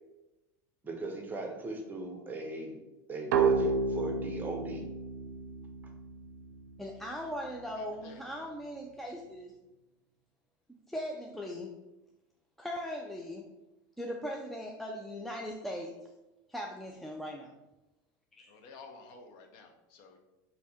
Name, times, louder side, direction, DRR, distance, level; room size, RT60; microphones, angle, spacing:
voice 1, 0.8-2.8 3.1-4.8, right 3 dB, 20° right, 1 dB, 0.8 m, -38 dB
sound 1, 3.3-6.8, right 4 dB, 90° right, 0.5 m, -31 dB
voice 2, 6.8-9.5 10.9-11.8 12.6-13.5 14.0-16.1 16.5-17.5 18.4-18.5, equal, ahead, 0 dB, 0.3 m, -39 dB
voice 3, 7.7-8.2 18.5-20.2, left 4 dB, 60° left, 4 dB, 0.7 m, -52 dB
3.3 x 2.7 x 4.2 m, 1.0 s
supercardioid pair, 120°, 10 cm